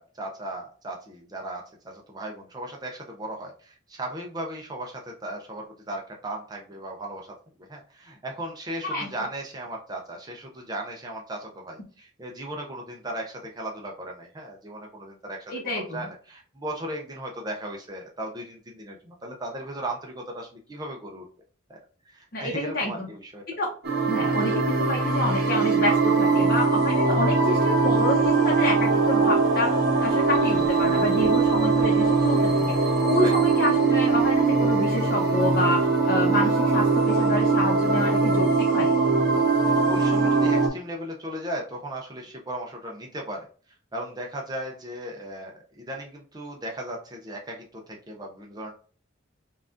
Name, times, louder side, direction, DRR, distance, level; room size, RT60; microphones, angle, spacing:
voice 1, 0.0-21.3 21.7-21.8 22.1-23.4 33.2-33.3 39.7-43.5 43.9-48.7, right 1 dB, 20° right, 0 dB, 0.6 m, -36 dB
voice 2, 15.5-16.0 22.3-23.1 23.5-23.7 24.1-29.7 30.0-32.6 33.0-38.9, left 1 dB, 55° left, -2 dB, 0.9 m, -28 dB
sound 1, 23.8-40.7, right 4 dB, 55° right, 1.2 m, -21 dB
5.6 x 2.5 x 2.5 m, 0.41 s
head